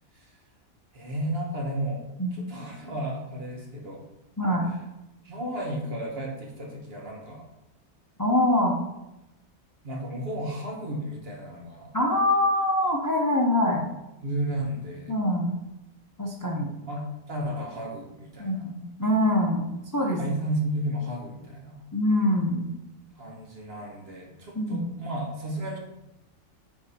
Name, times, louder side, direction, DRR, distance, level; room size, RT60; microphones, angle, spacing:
voice 1, 0.9-4.0 4.6-4.8 5.2-7.5 9.8-11.9 14.2-15.1 16.9-18.7 20.2-21.8 23.1-25.8, right 1 dB, 45° right, 0 dB, 1.4 m, -33 dB
voice 2, 4.4-4.7 8.2-8.8 11.9-13.8 15.1-15.5 16.2-16.7 18.4-20.2 21.9-22.7 24.6-24.9, left 1 dB, 20° left, 0 dB, 0.5 m, -24 dB
9.0 x 3.4 x 4.2 m, 0.93 s
omnidirectional pair, 1.5 m